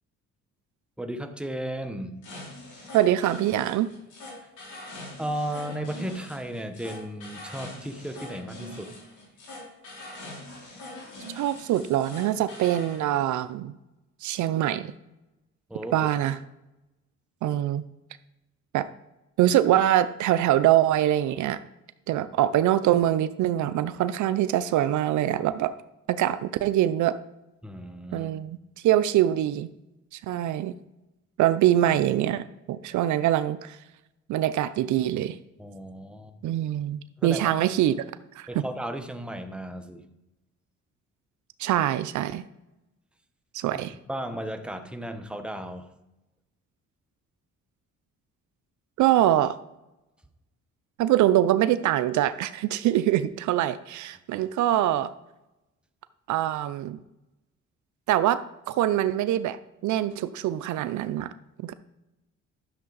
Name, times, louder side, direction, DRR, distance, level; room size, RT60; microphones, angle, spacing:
voice 1, 1.0-2.3 5.2-8.9 15.7-16.1 27.6-28.3 35.6-36.3 37.2-37.5 38.5-40.1 44.1-45.9, right 1 dB, 5° right, 6 dB, 1.0 m, -34 dB
sound 1, 2.2-13.0, left 1 dB, 75° left, 3.8 m, -43 dB
voice 2, 2.9-3.9 11.4-13.7 14.2-14.9 15.9-16.4 17.4-17.8 18.7-18.9 19.4-21.6 22.1-25.7 26.1-27.2 28.1-28.6 28.8-29.7 30.1-30.7 31.4-33.8 34.3-35.4 36.4-37.9 38.4-38.6 41.6-42.4 43.5-43.9 49.0-49.6 51.0-55.1 56.3-57.0 58.1-59.6 59.8-61.3 61.6-61.7, right 12 dB, 75° right, 13 dB, 0.5 m, -24 dB
11.0 x 6.6 x 4.0 m, 0.95 s
cardioid pair, 90°, 30 cm